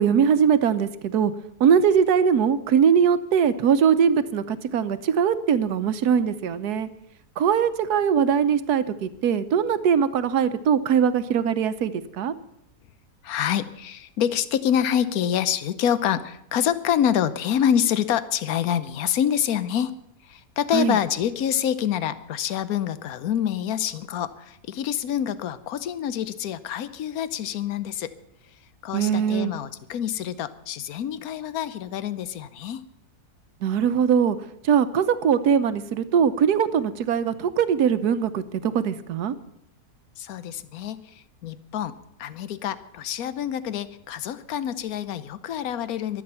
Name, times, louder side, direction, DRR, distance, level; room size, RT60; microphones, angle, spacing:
voice 1, 0.0-1.3 1.6-6.9 7.4-12.3 20.7-21.0 28.9-29.5 33.6-34.4 34.6-39.3, right 7 dB, 75° right, 12 dB, 1.4 m, -21 dB
voice 2, 13.2-19.9 20.2-28.1 28.8-32.8 40.2-46.2, left 9 dB, 70° left, 14 dB, 1.2 m, -26 dB
23.0 x 8.7 x 5.6 m, 0.80 s
omnidirectional pair, 1.7 m